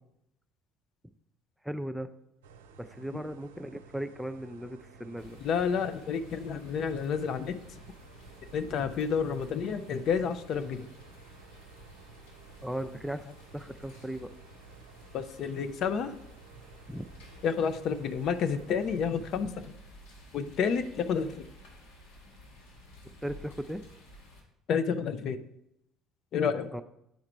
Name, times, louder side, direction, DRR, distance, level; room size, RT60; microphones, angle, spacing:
voice 1, 1.6-2.1 2.8-5.4 12.6-13.3 13.5-14.3 16.9-17.1 23.2-23.8 26.7-26.8, equal, ahead, 9 dB, 0.5 m, -37 dB
sound 1, 2.4-19.3, right 5 dB, 80° right, 0.6 m, -54 dB
sound 2, 5.2-24.4, equal, 75° left, 2.1 m, -53 dB
voice 2, 5.4-7.8 8.5-10.9 15.1-16.1 17.4-19.7 20.3-21.5 24.7-25.4 26.3-26.7, left 6 dB, 55° left, 10 dB, 0.6 m, -30 dB
9.4 x 4.8 x 4.5 m, 0.81 s
hypercardioid pair, 60°, 0 cm